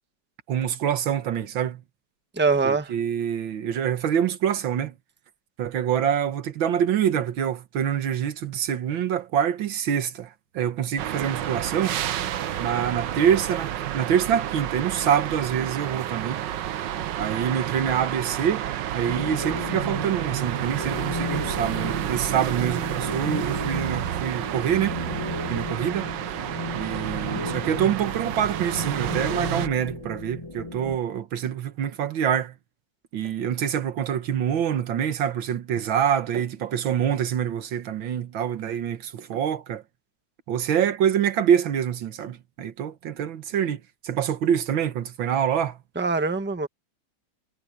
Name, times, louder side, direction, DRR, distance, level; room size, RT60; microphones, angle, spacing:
voice 1, 0.5-1.8 2.6-4.9 5.6-12.0 12.6-16.4 17.2-18.7 18.9-25.0 25.5-26.1 26.7-32.5 33.1-39.8 40.5-45.8, right 9 dB, 90° right, 2.0 m, -26 dB
voice 2, 2.4-2.9 45.9-46.7, right 4 dB, 5° right, 1.1 m, -23 dB
sound 1, 11.0-29.7, right 11 dB, 70° right, 1.5 m, -30 dB
sound 2, 19.0-31.0, left 2 dB, 15° left, 1.8 m, -35 dB
omnidirectional pair, 2.1 m